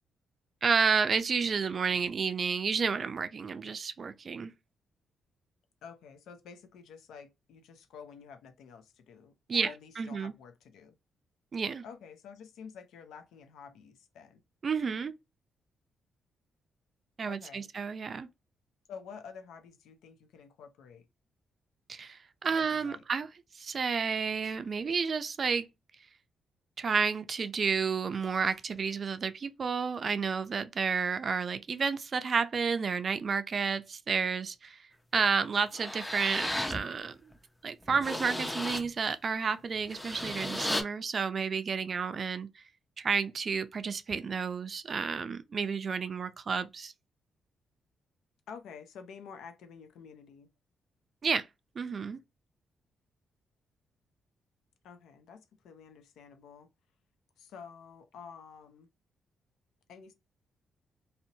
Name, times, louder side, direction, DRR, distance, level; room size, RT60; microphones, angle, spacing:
voice 1, 0.6-4.5 9.5-10.3 11.5-11.8 14.6-15.1 17.2-18.3 21.9-23.3 23.5-25.7 26.8-34.8 35.1-37.3 37.6-42.5 43.0-46.9 51.2-51.5 51.8-52.2, right 5 dB, 45° right, 0.4 m, -31 dB
voice 2, 5.8-11.0 11.8-14.4 17.3-17.7 18.9-21.1 22.5-23.0 48.5-50.5 54.8-56.7 57.4-58.9 59.9-60.1, left 6 dB, 85° left, 0.5 m, -49 dB
sound 1, 35.2-35.3 35.7-36.8 37.3-37.4 37.8-38.9 39.8-40.8, left 1 dB, 10° left, 0.5 m, -34 dB
2.6 x 2.0 x 2.7 m
cardioid pair, 85°, 0 cm